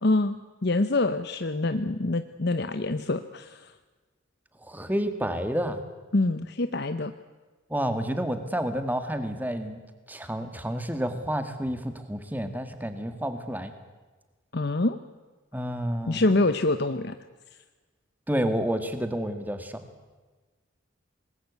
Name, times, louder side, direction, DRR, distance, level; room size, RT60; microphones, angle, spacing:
voice 1, 0.0-3.7 6.1-7.1 14.5-15.0 16.1-17.1, left 2 dB, 55° left, 10 dB, 0.9 m, -25 dB
voice 2, 4.7-5.8 7.7-9.8 10.1-13.7 15.5-16.2 18.3-19.8, equal, 10° right, 8 dB, 1.9 m, -29 dB
26.0 x 20.5 x 8.3 m, 1.3 s
head